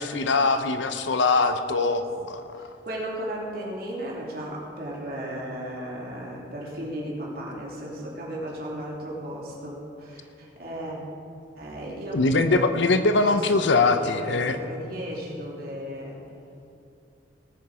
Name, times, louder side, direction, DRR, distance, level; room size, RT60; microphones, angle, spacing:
voice 1, 0.0-2.7 12.1-14.6, left 3 dB, 75° left, 8 dB, 0.7 m, -22 dB
voice 2, 2.5-11.0 11.6-12.7 13.2-16.2, right 1 dB, 50° right, -3 dB, 3.1 m, -35 dB
19.5 x 9.1 x 4.9 m, 2.7 s
head